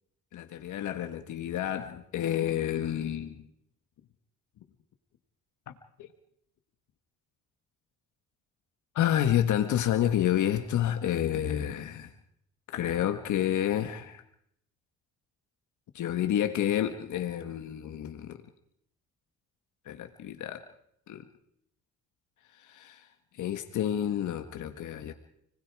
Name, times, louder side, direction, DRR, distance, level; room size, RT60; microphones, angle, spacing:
voice 1, 0.3-3.4 6.0-6.1 9.0-12.1 12.7-14.2 15.9-18.4 19.9-20.6 21.1-21.2 22.6-23.1 23.3-25.1, left 11 dB, 75° left, 7 dB, 1.8 m, -29 dB
29.5 x 20.0 x 4.9 m, 0.72 s
cardioid pair, 90°, 30 cm